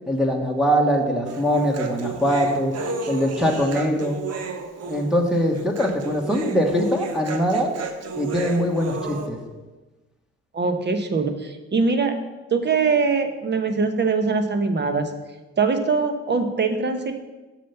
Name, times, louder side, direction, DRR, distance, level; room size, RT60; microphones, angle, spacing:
voice 1, 0.1-2.7 3.1-4.2 4.9-7.7 8.2-9.4, equal, ahead, -1 dB, 1.2 m, -22 dB
Human voice, 1.3-9.3, right 4 dB, 60° right, 1.0 m, -32 dB
voice 2, 10.5-12.1 12.5-15.1 15.6-17.1, right 4 dB, 35° right, 7 dB, 1.0 m, -22 dB
7.2 x 5.7 x 5.7 m, 1.2 s
cardioid pair, 70°, 29 cm